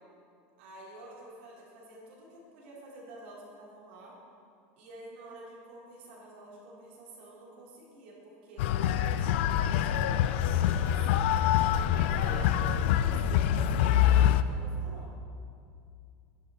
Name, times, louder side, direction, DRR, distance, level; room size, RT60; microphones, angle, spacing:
voice 1, 0.6-4.2 4.8-11.1 11.9-15.1, right 2 dB, 70° right, -5 dB, 3.5 m, -49 dB
sound 1, 8.6-14.4, left 10 dB, 65° left, 0.4 m, -25 dB
12.5 x 11.0 x 4.5 m, 2.4 s
supercardioid pair, 175°, 7 cm